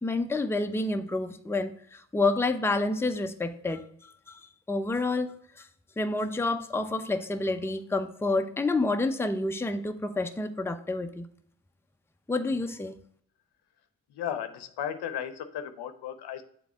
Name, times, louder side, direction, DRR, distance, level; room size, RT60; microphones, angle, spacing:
voice 1, 0.0-4.4 4.7-5.7 6.0-11.3 12.3-12.9, left 2 dB, 5° left, 7 dB, 0.6 m, -29 dB
voice 2, 14.1-16.4, left 9 dB, 65° left, 10 dB, 0.7 m, -35 dB
7.0 x 3.8 x 4.3 m, 0.65 s
hypercardioid pair, 40°, 42 cm